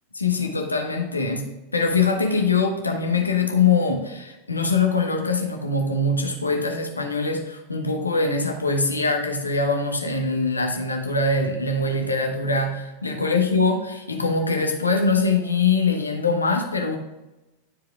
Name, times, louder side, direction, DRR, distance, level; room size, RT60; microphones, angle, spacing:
voice 1, 0.1-17.0, left 4 dB, 80° left, 3 dB, 1.1 m, -23 dB
12.5 x 5.0 x 2.4 m, 1.0 s
figure-of-eight pair, 90°, 0 cm